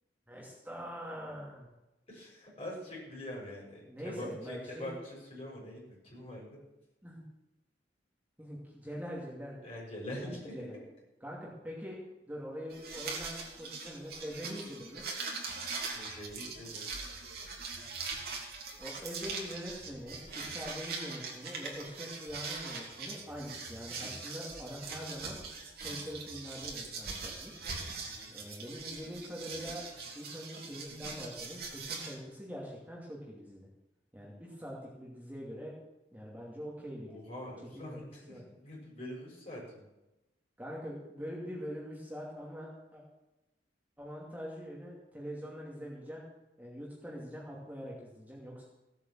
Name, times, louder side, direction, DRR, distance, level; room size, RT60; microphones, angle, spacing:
voice 1, 0.3-1.7 3.9-4.9 7.0-7.2 8.4-9.6 10.1-10.7 11.2-12.0 12.3-15.0 18.8-25.4 25.8-27.6 28.3-29.8 30.1-33.7 34.1-35.8 36.1-37.2 37.7-38.4 40.6-43.0 44.0-46.3 46.6-48.6, equal, 10° right, -4 dB, 2.6 m, -43 dB
voice 2, 2.1-6.6 9.6-10.8 15.9-16.9 28.0-28.3 34.3-34.5 37.1-39.8, left 1 dB, 35° left, -3 dB, 6.7 m, -44 dB
sound 1, 12.7-32.1, right 4 dB, 55° right, 3.1 m, -42 dB
16.5 x 8.3 x 7.5 m, 0.96 s
head